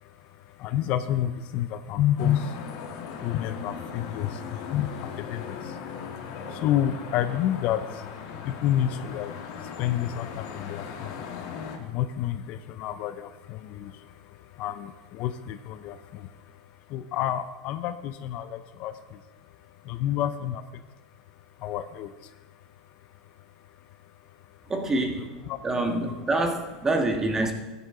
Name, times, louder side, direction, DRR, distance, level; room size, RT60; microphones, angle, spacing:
voice 1, 0.6-2.4 3.2-4.3 4.7-4.9 5.3-5.4 6.6-7.8 8.4-9.3 9.8-10.8 11.9-13.9 14.6-14.9 15.2-16.0 16.9-18.9 19.9-20.6 21.6-22.1 25.2-25.6, left 11 dB, 50° left, 11 dB, 0.6 m, -28 dB
sound 1, 2.2-11.8, left 6 dB, 65° left, 1.8 m, -38 dB
voice 2, 24.7-25.3 25.6-27.5, right 2 dB, 15° right, 4 dB, 1.5 m, -26 dB
15.5 x 9.8 x 3.8 m, 1.2 s
supercardioid pair, 135°, 3 cm